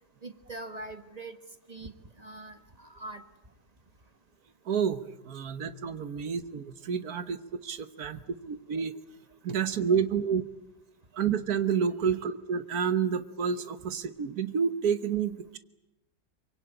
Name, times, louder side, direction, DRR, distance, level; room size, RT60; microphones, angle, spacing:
voice 1, 0.2-1.4 1.7-3.2, right 2 dB, 25° right, 8 dB, 1.4 m, -43 dB
voice 2, 4.7-8.9 9.4-10.4 11.1-15.6, right 7 dB, 60° right, 12 dB, 1.6 m, -29 dB
24.0 x 23.5 x 8.9 m, 0.91 s
omnidirectional pair, 1.8 m